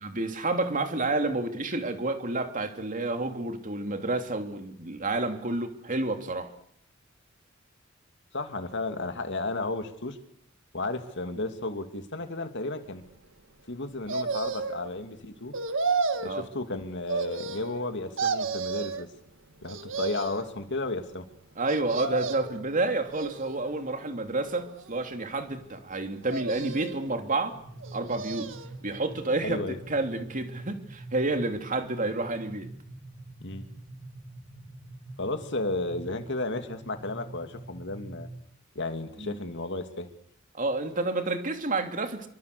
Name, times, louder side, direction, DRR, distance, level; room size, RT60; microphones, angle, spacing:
voice 1, 0.0-6.5 16.2-16.4 21.6-27.5 27.9-28.5 28.8-29.6 29.9-32.7 39.2-39.3 40.5-42.3, right 2 dB, 40° right, 6 dB, 3.0 m, -29 dB
voice 2, 8.3-10.2 10.7-13.0 13.7-15.5 16.2-19.1 19.6-21.3 29.4-29.8 33.4-33.7 35.2-38.3 38.7-40.1, left 2 dB, 60° left, 7 dB, 2.8 m, -33 dB
sound 1, 14.1-14.9 15.5-16.4 17.1-17.9 18.2-19.0 19.6-20.5 21.7-22.6 23.1-23.8 24.4-25.2 26.2-27.1 27.8-28.7 29.1-29.2, right 4 dB, 70° right, 1.9 m, -32 dB
sound 2, 27.5-38.4, right 2 dB, 15° right, 3.1 m, -45 dB
27.0 x 24.5 x 6.9 m, 0.69 s
head